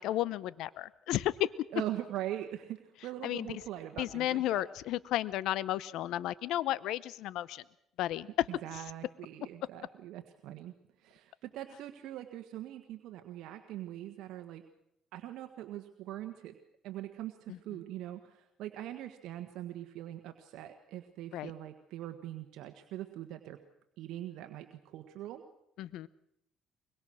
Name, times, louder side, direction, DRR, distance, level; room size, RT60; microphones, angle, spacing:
voice 1, 0.0-1.7 3.2-3.5 4.0-7.6 8.0-8.5 17.5-17.6 21.3-21.5 25.8-26.1, left 13 dB, 75° left, 19 dB, 0.7 m, -33 dB
voice 2, 1.7-4.6 8.5-10.7 11.0-14.6 15.1-16.5 16.8-23.6 24.0-25.4, right 13 dB, 75° right, 6 dB, 1.5 m, -42 dB
23.5 x 21.5 x 6.4 m, 0.79 s
cardioid pair, 90°, 0 cm